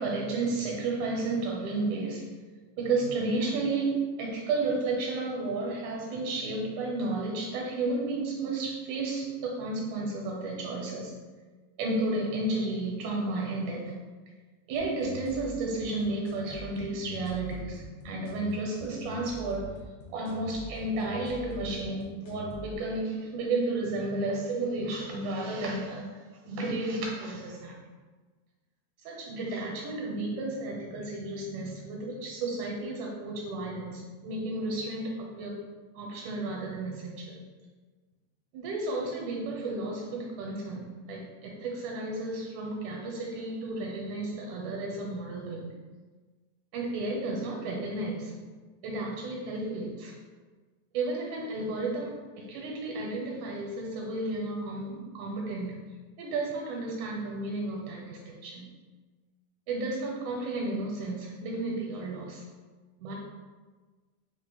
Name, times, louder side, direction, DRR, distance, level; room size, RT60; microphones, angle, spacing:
voice 1, 0.0-2.3 2.8-11.1 11.8-13.9 14.7-19.7 20.1-26.1 26.4-27.7 29.1-35.6 36.0-37.4 38.5-45.7 46.7-48.3 48.8-50.1 50.9-55.7 56.2-58.7 59.7-62.4 63.0-63.1, right 2 dB, 85° right, -2 dB, 2.2 m, -32 dB
sound 1, 14.8-22.8, left 2 dB, 80° left, 2.1 m, -44 dB
5.2 x 2.5 x 3.9 m, 1.4 s
omnidirectional pair, 3.5 m